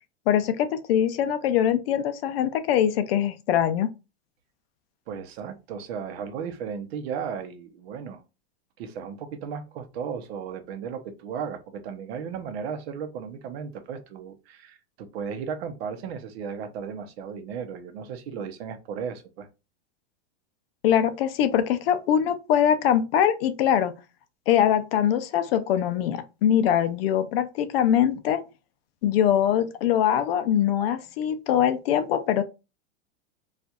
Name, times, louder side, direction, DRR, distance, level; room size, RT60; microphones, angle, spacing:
voice 1, 0.3-3.9 20.8-23.9 24.5-28.4 29.0-32.4, left 10 dB, 55° left, 0.5 m, -23 dB
voice 2, 5.1-8.2 8.8-19.5, right 7 dB, 55° right, 0.7 m, -35 dB
4.2 x 2.4 x 2.3 m
supercardioid pair, 165°, 37 cm